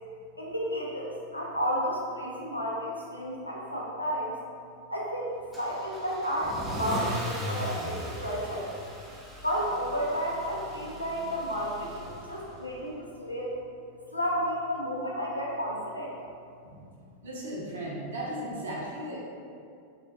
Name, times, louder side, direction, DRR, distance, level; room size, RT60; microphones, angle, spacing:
voice 1, 0.4-4.3 4.9-8.7 9.4-13.6 14.1-16.1, equal, 85° left, -4 dB, 0.5 m, -32 dB
Car / Engine starting / Accelerating revving vroom, 5.5-12.6, equal, 5° right, 0.5 m, -38 dB
voice 2, 17.2-19.2, right 1 dB, 65° right, -4 dB, 0.6 m, -36 dB
3.2 x 2.2 x 2.6 m, 2.4 s
figure-of-eight pair, 90°, 0 cm